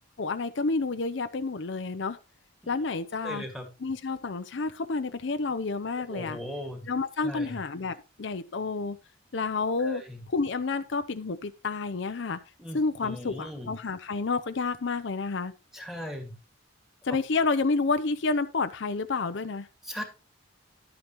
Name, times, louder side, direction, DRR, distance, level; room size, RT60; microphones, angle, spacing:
voice 1, 0.2-2.2 2.7-3.4 3.8-6.4 6.8-9.0 9.3-10.0 10.3-12.4 12.7-15.5 17.0-19.7, left 4 dB, 60° left, 0.6 m, -29 dB
voice 2, 3.2-3.7 6.1-6.8 7.2-7.6 9.8-10.2 12.6-13.7 15.7-16.3 17.1-17.2 19.8-20.0, equal, ahead, 1.9 m, -38 dB
12.0 x 8.7 x 3.0 m
head